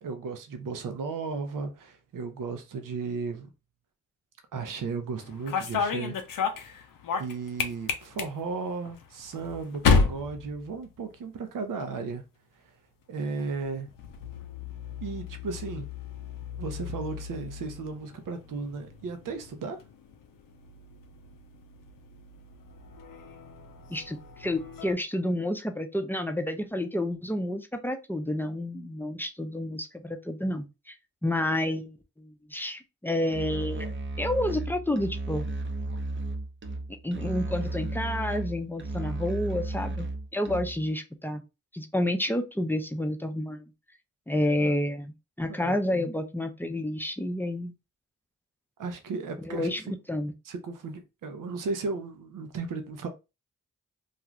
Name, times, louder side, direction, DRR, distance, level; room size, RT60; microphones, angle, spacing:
voice 1, 0.0-3.5 4.5-6.1 6.6-6.8 7.2-12.2 12.6-12.7 13.1-13.9 15.0-15.9 16.6-19.8 44.6-44.8 45.5-46.1 48.8-49.7 50.4-53.1, right 4 dB, 75° right, 0.6 m, -35 dB
sound 1, 5.2-11.4 11.7-12.2 13.3-24.9, left 5 dB, 80° left, 0.6 m, -33 dB
voice 2, 23.9-30.9 31.2-33.9 34.2-35.5 37.0-40.1 40.3-41.4 41.7-43.7 44.3-47.7 49.4-50.3, left 1 dB, 5° left, 0.6 m, -30 dB
Musical instrument, 33.3-40.9, right 2 dB, 35° right, 0.6 m, -34 dB
2.5 x 2.3 x 3.0 m
cardioid pair, 45°, 33 cm